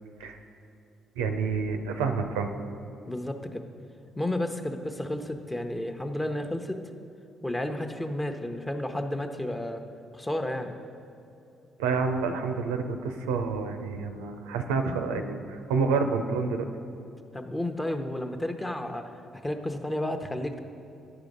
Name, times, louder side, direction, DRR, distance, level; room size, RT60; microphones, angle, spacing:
voice 1, 1.2-2.5 11.8-16.7, right 4 dB, 90° right, 6 dB, 0.5 m, -28 dB
voice 2, 3.0-3.6 4.2-6.8 7.4-9.8 10.1-10.7 17.3-19.1 19.4-20.6, left 1 dB, 15° left, 6 dB, 0.8 m, -32 dB
9.9 x 4.9 x 5.3 m, 2.7 s
hypercardioid pair, 50°, 0 cm